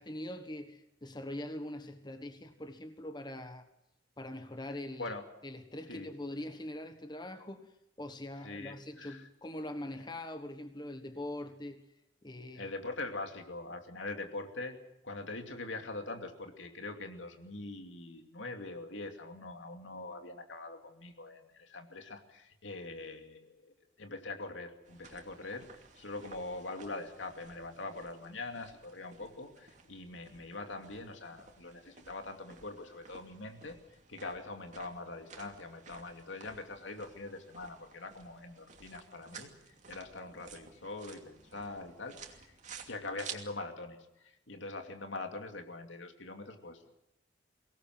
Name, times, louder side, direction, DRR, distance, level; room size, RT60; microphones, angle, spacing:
voice 1, 0.0-3.7 4.2-5.1 5.4-11.8 12.2-12.7, left 1 dB, 25° left, 8 dB, 1.3 m, -43 dB
voice 2, 8.4-9.2 12.6-14.8 15.0-25.7 26.0-39.5 39.9-42.5 42.9-46.9, left 2 dB, 85° left, 5 dB, 2.7 m, -43 dB
sound 1, 24.8-43.4, right 6 dB, 40° right, 2.7 m, -54 dB
23.5 x 18.5 x 7.7 m, 0.88 s
head